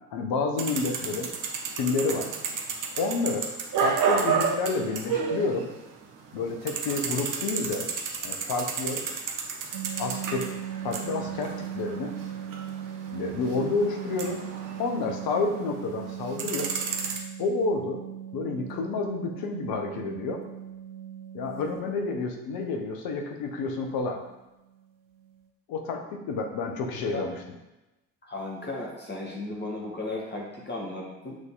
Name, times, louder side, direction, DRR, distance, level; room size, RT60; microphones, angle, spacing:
voice 1, 0.1-1.3 1.8-2.3 3.0-3.5 3.8-5.7 6.3-7.9 8.2-9.0 10.0-10.5 10.8-12.1 13.1-14.4 14.8-16.7 17.4-18.0 18.3-20.4 21.3-24.2 25.7-27.3, left 3 dB, 55° left, 3 dB, 1.3 m, -29 dB
sound 1, 0.6-6.0 6.3-15.7 16.0-17.2, right 6 dB, 45° right, 1.1 m, -31 dB
sound 2, 9.7-21.8 23.7-23.9 24.1-24.3 24.7-24.8 25.1-25.4, right 10 dB, 70° right, 0.8 m, -39 dB
voice 2, 26.9-27.3 28.2-31.4, left 2 dB, 25° left, -3 dB, 1.6 m, -35 dB
8.0 x 4.0 x 3.8 m, 0.99 s
figure-of-eight pair, 55°, 44 cm